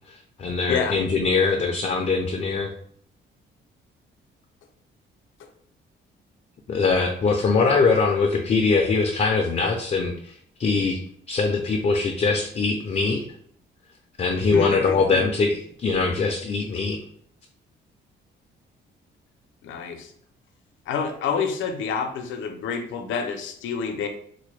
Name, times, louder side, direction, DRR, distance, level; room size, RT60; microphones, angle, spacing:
voice 1, 0.1-2.7 6.7-10.3 10.6-11.0 11.3-13.2 14.2-17.0, left 4 dB, 35° left, 3 dB, 0.5 m, -22 dB
voice 2, 0.7-1.0 14.4-15.2 19.6-20.1 20.9-24.1, left 6 dB, 80° left, 5 dB, 0.6 m, -28 dB
4.1 x 2.2 x 3.1 m, 0.62 s
cardioid pair, 110°, 20 cm